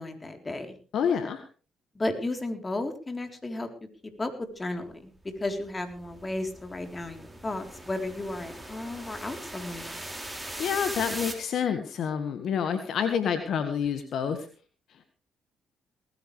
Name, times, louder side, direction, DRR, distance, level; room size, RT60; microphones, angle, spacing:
voice 1, 0.0-0.8 2.0-3.7 4.2-10.0, left 2 dB, 25° left, 6 dB, 3.8 m, -34 dB
voice 2, 0.9-1.4 10.6-14.4, left 7 dB, 65° left, 8 dB, 1.7 m, -28 dB
sound 1, 5.3-11.3, right 1 dB, 5° right, 5.5 m, -40 dB
19.0 x 16.0 x 3.4 m, 0.36 s
hypercardioid pair, 50°, 0 cm